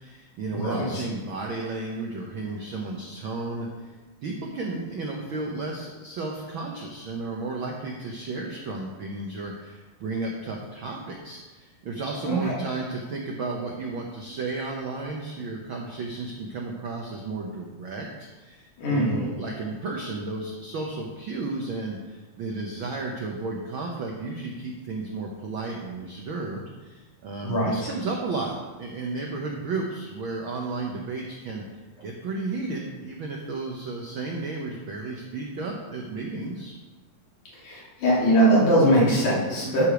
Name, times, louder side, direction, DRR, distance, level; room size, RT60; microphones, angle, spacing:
voice 1, 0.0-3.9 4.2-31.6 32.0-36.7 39.6-39.9, right 3 dB, 75° right, 0 dB, 1.1 m, -33 dB
voice 2, 0.5-1.0 12.2-12.5 18.8-19.2 27.4-27.9 37.6-39.9, right 1 dB, 80° left, -6 dB, 4.2 m, -21 dB
11.5 x 4.9 x 5.0 m, 1.2 s
omnidirectional pair, 3.5 m